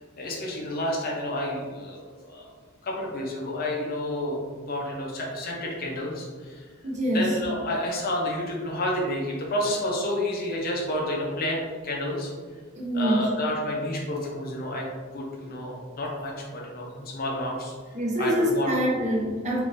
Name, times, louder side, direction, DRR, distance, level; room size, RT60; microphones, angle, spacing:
voice 1, 0.2-2.5 2.8-6.6 7.1-12.3 12.9-14.9 15.1-17.7 18.2-18.7, left 1 dB, 45° left, -1 dB, 0.7 m, -30 dB
voice 2, 6.8-7.3 12.7-13.3 17.9-19.6, equal, 35° right, -3 dB, 0.7 m, -25 dB
3.5 x 2.7 x 2.5 m, 1.6 s
head